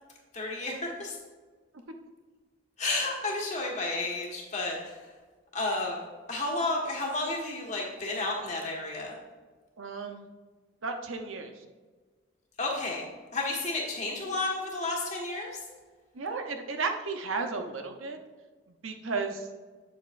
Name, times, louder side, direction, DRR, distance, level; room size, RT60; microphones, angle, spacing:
voice 1, 0.3-1.1 2.8-4.9 5.5-9.1 12.6-13.0 13.3-15.6, left 2 dB, 35° left, -2 dB, 1.5 m, -32 dB
voice 2, 9.8-10.3 10.8-11.6 16.1-18.2 18.8-19.5, right 4 dB, 85° right, 5 dB, 0.8 m, -34 dB
8.3 x 7.8 x 2.5 m, 1.4 s
head